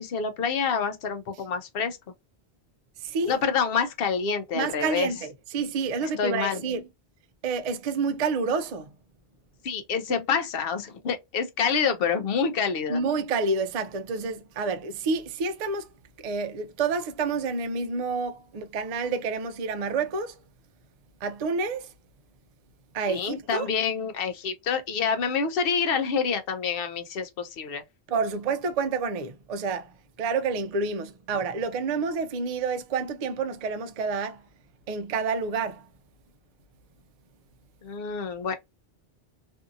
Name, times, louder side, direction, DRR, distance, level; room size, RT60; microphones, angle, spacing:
voice 1, 0.0-2.0 3.3-5.1 6.0-6.6 9.6-13.0 23.1-27.8 37.8-38.5, left 6 dB, 65° left, 0.8 m, -27 dB
voice 2, 3.0-3.4 4.5-6.8 7.4-8.9 12.9-15.9 16.2-20.4 21.2-21.9 22.9-23.7 28.1-34.4 34.9-35.8, right 4 dB, 55° right, 0.4 m, -29 dB
2.7 x 2.6 x 2.4 m
omnidirectional pair, 1.1 m